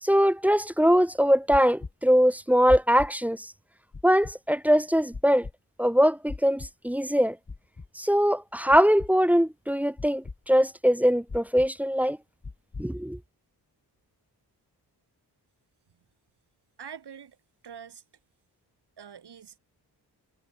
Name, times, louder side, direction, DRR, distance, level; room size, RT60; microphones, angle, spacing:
voice 1, 0.0-3.5 4.0-5.5 5.8-7.4 8.0-12.2 12.8-13.2, equal, 5° right, 0.5 m, -22 dB
sound 1, 1.5-1.9 2.7-3.1 3.9-4.3 5.1-5.5 6.3-6.7 7.5-7.9 8.7-9.1 10.0-10.4 11.3-11.7 12.4-12.9, left 4 dB, 35° left, 2.3 m, -37 dB
voice 2, 16.8-17.4 17.6-18.0 19.0-19.6, right 7 dB, 70° right, 3.4 m, -44 dB
cardioid pair, 55°, 41 cm